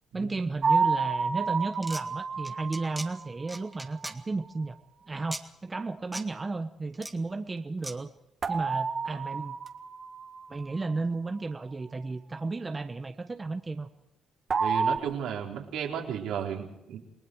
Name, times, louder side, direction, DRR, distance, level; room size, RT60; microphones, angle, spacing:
voice 1, 0.1-4.8 5.1-8.1 8.5-9.5 10.5-13.9, right 3 dB, 25° right, 7 dB, 1.2 m, -33 dB
sound 1, 0.6-3.6 8.4-10.6 14.5-15.0, right 5 dB, 40° right, 1.8 m, -29 dB
sound 2, 1.7-2.0 2.4-3.1 3.5-4.2 5.3-5.4 6.1-6.2 6.9-7.1 7.8-7.9, right 1 dB, 5° right, 1.9 m, -38 dB
voice 2, 14.6-17.0, right 8 dB, 85° right, -1 dB, 4.3 m, -34 dB
28.5 x 19.5 x 4.8 m, 0.84 s
cardioid pair, 90°, 0 cm